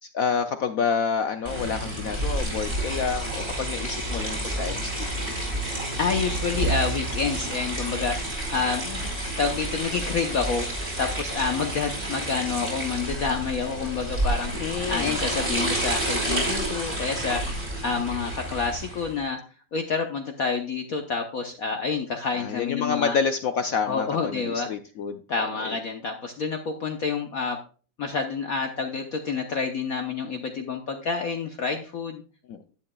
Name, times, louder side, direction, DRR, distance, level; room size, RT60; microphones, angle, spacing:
voice 1, 0.0-5.3 8.9-9.0 14.6-15.2 22.3-25.2 25.6-25.8 32.5-32.6, left 6 dB, 75° left, 8 dB, 0.7 m, -28 dB
sound 1, 1.4-19.1, right 1 dB, 35° right, 4.9 m, -30 dB
voice 2, 6.0-8.8 9.4-10.7 11.0-14.5 14.9-19.4 19.7-23.2 23.9-24.7 25.3-27.6 28.0-32.2, left 5 dB, 55° left, 4 dB, 1.2 m, -28 dB
11.5 x 10.5 x 2.3 m, 0.37 s
omnidirectional pair, 2.2 m